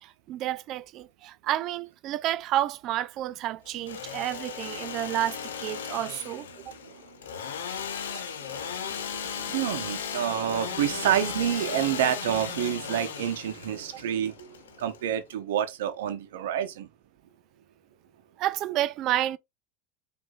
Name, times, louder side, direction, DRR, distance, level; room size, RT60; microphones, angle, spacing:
voice 1, 0.0-6.7 18.4-19.4, right 13 dB, 50° right, 0.3 m, -30 dB
Engine / Sawing, 3.7-15.3, left 7 dB, 85° left, 0.6 m, -36 dB
voice 2, 6.5-7.2 8.0-16.9, right 10 dB, 80° right, 0.8 m, -29 dB
4.8 x 2.6 x 2.4 m
hypercardioid pair, 100°, 0 cm